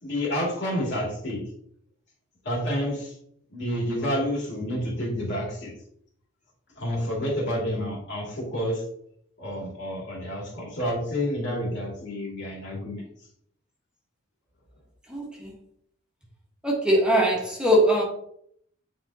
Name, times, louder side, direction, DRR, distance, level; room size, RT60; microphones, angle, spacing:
voice 1, 0.0-1.5 2.4-3.1 3.5-5.7 6.8-8.8 9.4-13.1, equal, 60° left, -3 dB, 2.6 m, -29 dB
voice 2, 15.1-15.5 16.6-18.0, equal, 5° right, -3 dB, 1.4 m, -21 dB
9.1 x 4.3 x 2.8 m, 0.69 s
head